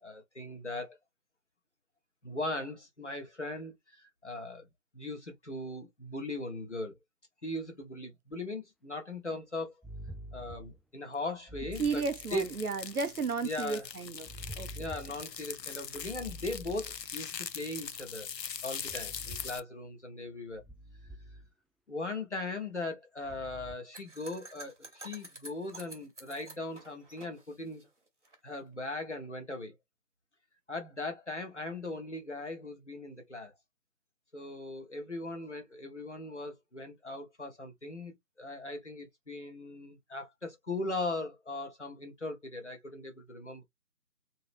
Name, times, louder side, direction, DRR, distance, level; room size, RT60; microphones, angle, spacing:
voice 1, 0.0-1.0 2.2-4.6 4.9-7.0 7.4-9.8 10.3-12.0 12.3-12.5 13.4-13.9 14.7-18.3 18.6-20.6 21.9-27.8 28.4-29.7 30.7-33.5 34.3-43.6, left 2 dB, 45° left, 1.0 m, -39 dB
sound 1, 8.3-8.4 9.8-10.8 11.5-12.6 14.2-15.2 15.9-17.1 18.8-19.6 20.5-21.5 23.2-23.7, right 1 dB, ahead, 0.3 m, -47 dB
sound 2, 11.8-19.6, left 8 dB, 85° left, 0.6 m, -42 dB
voice 2, 11.8-14.9, right 4 dB, 65° right, 0.5 m, -34 dB
sound 3, 23.9-28.4, right 1 dB, 45° right, 1.1 m, -50 dB
2.8 x 2.3 x 3.2 m
figure-of-eight pair, 175°, 48 cm